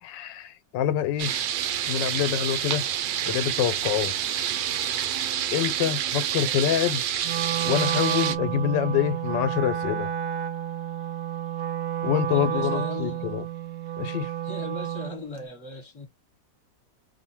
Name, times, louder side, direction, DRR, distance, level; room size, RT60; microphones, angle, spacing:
voice 1, 0.0-1.4 1.9-2.9 3.2-4.4 5.5-7.0 7.6-10.1 12.0-13.5 14.0-14.3, left 10 dB, 85° left, 1.3 m, -26 dB
sound 1, 1.2-8.4, right 10 dB, 90° right, 1.3 m, -28 dB
Wind instrument woodwind instrument, 7.2-15.2, right 10 dB, 75° right, 0.7 m, -30 dB
voice 2, 12.3-13.3 14.5-16.1, left 2 dB, 20° left, 1.0 m, -37 dB
2.7 x 2.6 x 4.3 m
omnidirectional pair, 1.9 m